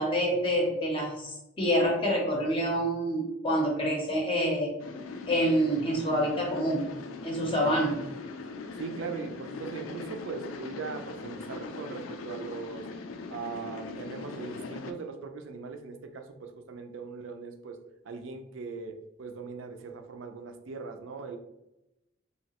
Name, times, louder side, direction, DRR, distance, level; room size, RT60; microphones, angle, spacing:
voice 1, 0.0-4.7 5.3-6.9 7.2-8.0, equal, 25° left, -1 dB, 0.5 m, -27 dB
sound 1, 4.8-14.9, left 4 dB, 85° left, 0.3 m, -41 dB
voice 2, 8.8-12.9 13.3-17.8 18.1-21.4, right 4 dB, 75° right, 6 dB, 0.4 m, -40 dB
3.0 x 2.8 x 2.8 m, 0.91 s
head